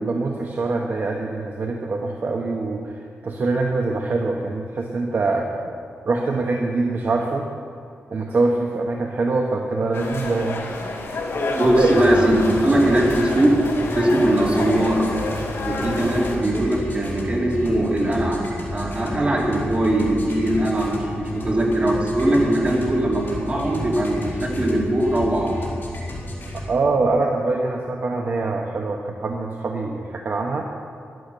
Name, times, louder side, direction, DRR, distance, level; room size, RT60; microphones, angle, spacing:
voice 1, 0.0-5.7 6.0-7.5 8.1-10.7 11.6-12.0 26.5-30.7, right 3 dB, 45° right, 1 dB, 1.0 m, -24 dB
sound 1, 9.9-16.4, left 2 dB, 85° left, 2.8 m, -29 dB
voice 2, 11.5-13.6 13.9-15.1 15.6-25.5, right 1 dB, 30° right, -3 dB, 2.9 m, -20 dB
sound 2, 11.8-26.6, left 1 dB, 50° left, 4.0 m, -32 dB
14.0 x 11.5 x 6.8 m, 2.4 s
wide cardioid pair, 160°, 4 cm